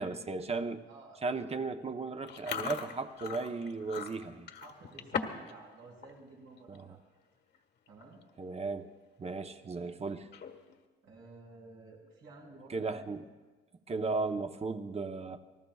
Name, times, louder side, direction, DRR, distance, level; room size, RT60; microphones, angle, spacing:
voice 1, 0.0-0.8 1.2-4.5 6.7-6.9 8.4-8.9 9.2-10.3 12.7-13.2 13.9-15.4, right 3 dB, 30° right, 8 dB, 0.9 m, -36 dB
voice 2, 0.9-1.2 4.5-7.0 7.9-8.2 11.0-13.1 14.0-14.4, right 3 dB, 90° right, -2 dB, 5.2 m, -53 dB
Chewing mastication, 2.3-5.5 5.8-6.1 6.6-6.8 7.5-7.6 7.9-8.2 8.6-8.7 10.2-10.7, left 6 dB, 60° left, 1.5 m, -39 dB
28.5 x 19.0 x 2.4 m, 1.3 s
cardioid pair, 90°, 20 cm